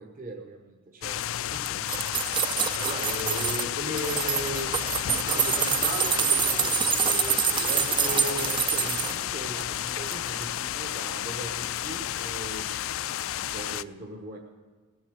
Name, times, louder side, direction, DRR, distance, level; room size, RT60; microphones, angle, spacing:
voice 1, 0.0-2.4 8.0-12.8 13.4-14.4, right 2 dB, 40° right, 1 dB, 1.2 m, -42 dB
sound 1, 1.0-13.8, left 12 dB, 75° left, 0.4 m, -31 dB
sound 2, 1.5-3.7 4.0-9.2 9.6-10.2 10.4-10.5, right 8 dB, 25° right, 0.3 m, -27 dB
voice 2, 2.7-4.7 5.1-8.4, equal, 80° right, 0 dB, 4.0 m, -35 dB
sound 3, 2.9-3.2 5.4-5.5 8.0-8.5 10.8-10.9 12.6-12.8, right 5 dB, 60° right, 1.4 m, -48 dB
18.5 x 7.1 x 7.8 m, 1.4 s
head